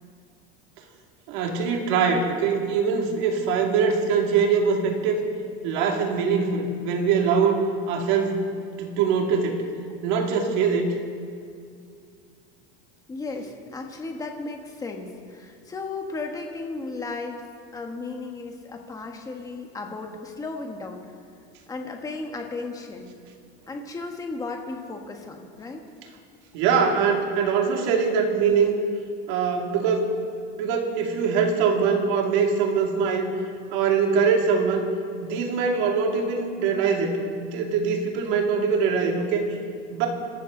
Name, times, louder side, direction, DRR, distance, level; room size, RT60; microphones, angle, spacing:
voice 1, 1.3-5.2 5.6-9.7 10.0-10.9 26.5-28.8 29.3-30.1 30.6-33.3 33.7-34.9 35.2-39.5 39.9-40.1, right 5 dB, 60° right, 1 dB, 2.5 m, -23 dB
voice 2, 13.1-17.4 17.7-21.1 21.7-23.1 23.7-25.8, left 3 dB, 10° left, 2 dB, 1.4 m, -35 dB
26.5 x 13.5 x 3.9 m, 2.3 s
cardioid pair, 170°, 30 cm